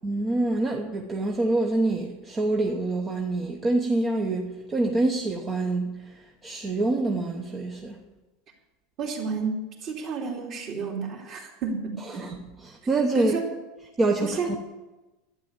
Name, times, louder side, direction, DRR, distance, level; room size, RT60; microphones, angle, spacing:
voice 1, 0.0-8.0 12.1-13.3 14.0-14.6, right 2 dB, 15° right, 1.0 m, -26 dB
voice 2, 9.0-12.3 13.1-13.5 14.2-14.5, right 4 dB, 35° right, 2.9 m, -31 dB
12.5 x 9.3 x 8.8 m
supercardioid pair, 170°, 0 cm